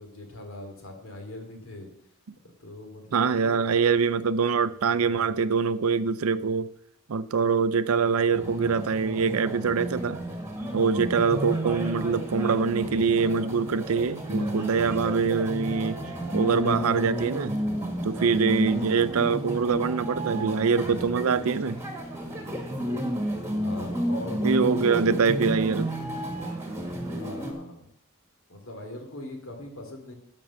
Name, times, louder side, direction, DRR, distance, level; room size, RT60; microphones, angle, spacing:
voice 1, 0.0-1.9 2.6-3.6 23.6-24.9 27.1-27.9 28.5-30.1, left 2 dB, 70° left, 2.7 m, -41 dB
voice 2, 3.1-6.7 7.1-10.2 10.7-16.0 16.3-17.5 18.0-21.8 24.4-25.9, right 5 dB, 80° right, 0.5 m, -24 dB
sound 1, 8.3-27.5, right 1 dB, 10° right, 1.6 m, -32 dB
12.5 x 5.3 x 7.1 m
head